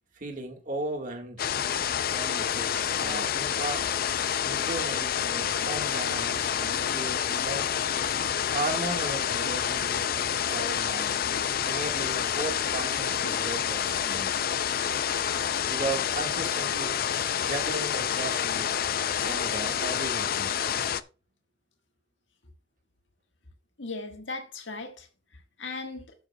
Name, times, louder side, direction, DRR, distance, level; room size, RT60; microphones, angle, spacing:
voice 1, 0.1-1.5 2.1-4.0 4.4-7.7 8.4-10.1 10.5-11.2 11.6-14.4 15.7-18.7 19.2-20.5, right 2 dB, 45° right, 1.7 m, -36 dB
sound 1, 1.4-21.0, left 9 dB, 55° left, 0.5 m, -28 dB
voice 2, 23.8-25.1 25.3-26.1, left 3 dB, 85° left, 1.5 m, -38 dB
11.5 x 8.6 x 2.3 m
head